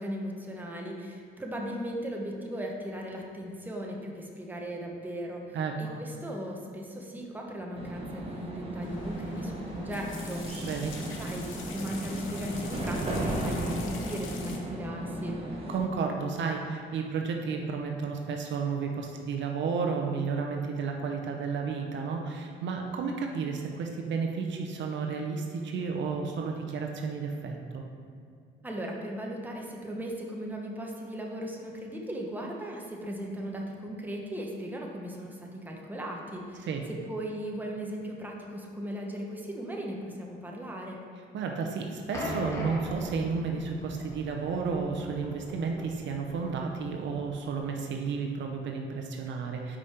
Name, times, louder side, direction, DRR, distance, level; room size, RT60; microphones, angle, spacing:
voice 1, 0.0-10.7 11.0-15.4 28.6-41.0, equal, 10° right, -1 dB, 0.9 m, -37 dB
voice 2, 5.5-6.0 10.6-10.9 15.7-27.8 36.6-36.8 41.3-49.8, right 5 dB, 65° right, 2 dB, 0.7 m, -32 dB
sound 1, 7.7-15.8, right 1 dB, 30° right, 1.2 m, -35 dB
sound 2, 8.8-14.6, left 5 dB, 80° left, 0.7 m, -45 dB
sound 3, 42.1-47.5, left 1 dB, 15° left, 1.5 m, -40 dB
5.1 x 5.0 x 4.3 m, 2.3 s
cardioid pair, 90°, 20 cm